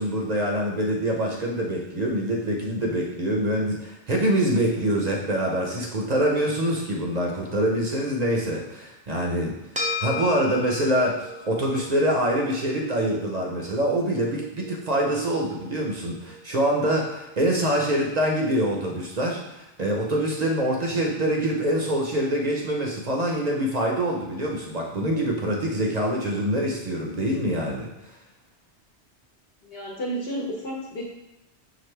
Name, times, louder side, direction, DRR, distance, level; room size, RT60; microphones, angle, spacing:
voice 1, 0.0-27.9, right 1 dB, 45° right, -1 dB, 0.7 m, -25 dB
sound 1, 9.7-18.3, left 3 dB, 10° right, 0.3 m, -37 dB
voice 2, 29.6-31.1, right 1 dB, 60° left, -3 dB, 1.0 m, -32 dB
5.8 x 2.6 x 3.2 m, 0.95 s
omnidirectional pair, 1.2 m